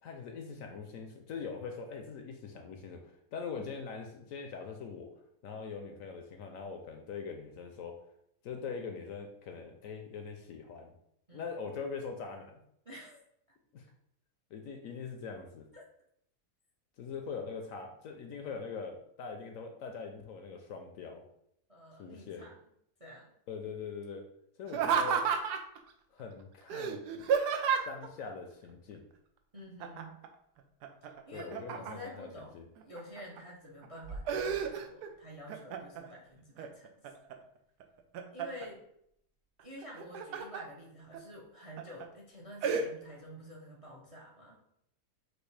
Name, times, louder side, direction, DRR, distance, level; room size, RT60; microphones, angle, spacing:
voice 1, 0.0-5.1 5.4-8.0 8.4-10.9 11.3-12.6 13.7-13.8 14.5-15.7 17.0-21.2 22.0-22.4 23.5-24.2 24.6-25.3 26.1-27.3 27.8-29.0 31.3-32.3 32.5-32.7, left 5 dB, 70° left, 4 dB, 0.9 m, -42 dB
voice 2, 12.8-13.2 15.7-15.8 21.7-22.6 23.0-23.3 29.5-30.2 31.0-36.9 38.3-38.8 39.6-44.6, equal, 40° right, -2 dB, 0.5 m, -49 dB
Laughter, 24.7-25.8 26.7-28.1 29.8-30.3 30.6-32.2 32.8-33.4 33.8-35.1 35.5-36.1 36.6-37.3 37.8-38.7 39.8-40.6 41.1-41.2 41.8-42.0 42.6-42.8, right 6 dB, 90° right, 1.2 m, -32 dB
6.2 x 2.6 x 3.3 m, 0.74 s
omnidirectional pair, 1.7 m